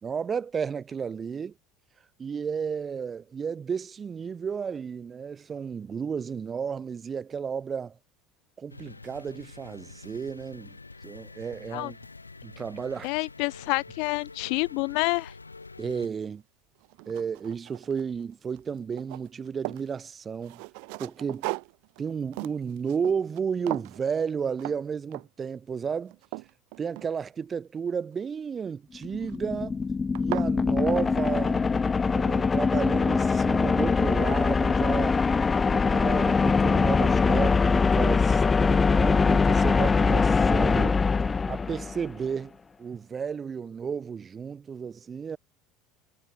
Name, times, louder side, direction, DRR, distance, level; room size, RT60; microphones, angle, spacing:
voice 1, 0.0-1.5 2.2-8.0 8.6-10.8 11.0-12.0 12.4-13.1 15.8-16.4 17.1-20.6 21.0-21.5 22.0-26.2 26.8-29.8 30.2-31.6 32.1-35.2 35.7-41.0 41.5-45.4, right 6 dB, 25° right, 3.7 m, -32 dB
sound 1, 8.7-16.1, left 3 dB, 85° left, 5.7 m, -46 dB
voice 2, 13.0-15.3, left 32 dB, 55° left, 0.3 m, -28 dB
sound 2, 16.2-16.3 16.8-18.2 18.5-19.9 20.4-23.4 23.7-24.0 24.6-24.8 25.1-25.5 25.9-27.5 29.0-29.4 29.8-29.9 30.1-30.5, right 40 dB or more, 55° right, 5.9 m, -38 dB
sound 3, 29.0-42.1, left 4 dB, 20° left, 1.4 m, -23 dB
figure-of-eight pair, 70°, 0 cm